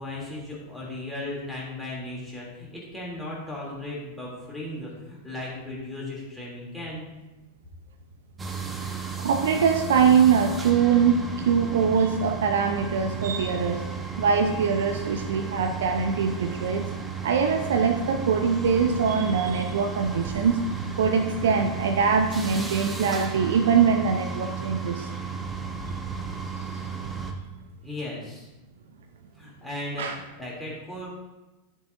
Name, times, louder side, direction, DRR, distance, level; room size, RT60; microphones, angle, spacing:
voice 1, 0.0-7.0 27.8-28.5 29.3-31.1, left 1 dB, ahead, -6 dB, 2.9 m, -36 dB
sound 1, 8.4-27.3, right 6 dB, 15° right, 1.0 m, -34 dB
voice 2, 9.2-13.8 14.2-16.9 17.2-20.6 21.0-25.1 30.0-30.1, right 6 dB, 60° right, 6 dB, 0.7 m, -23 dB
12.0 x 6.8 x 2.6 m, 1.1 s
figure-of-eight pair, 90°, 0 cm